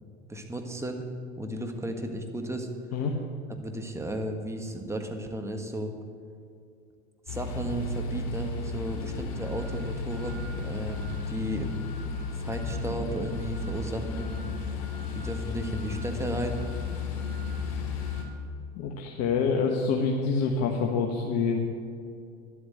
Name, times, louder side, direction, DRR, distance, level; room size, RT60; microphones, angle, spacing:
voice 1, 0.3-1.1 1.4-2.7 3.6-5.9 7.3-11.8 12.3-14.3 15.1-16.6, right 1 dB, 10° right, 4 dB, 1.6 m, -34 dB
sound 1, 7.3-18.2, left 3 dB, 70° left, 2.8 m, -33 dB
voice 2, 18.7-21.6, left 5 dB, 50° left, 1 dB, 1.3 m, -26 dB
11.5 x 8.0 x 8.1 m, 2.4 s
hypercardioid pair, 80°, 32 cm